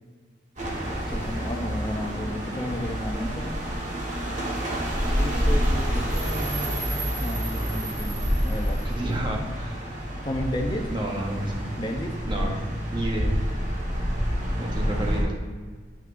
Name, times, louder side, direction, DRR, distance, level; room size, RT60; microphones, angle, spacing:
sound 1, 0.6-15.2, equal, 40° right, 1.3 m, -28 dB
voice 1, 0.9-3.5 5.0-8.8 10.2-10.9 11.7-12.2, left 1 dB, 25° left, 1 dB, 0.6 m, -33 dB
voice 2, 8.8-9.9 10.9-11.6 12.2-13.4 14.6-15.4, right 1 dB, 25° right, 0 dB, 0.9 m, -31 dB
7.7 x 6.2 x 2.6 m, 1.5 s
head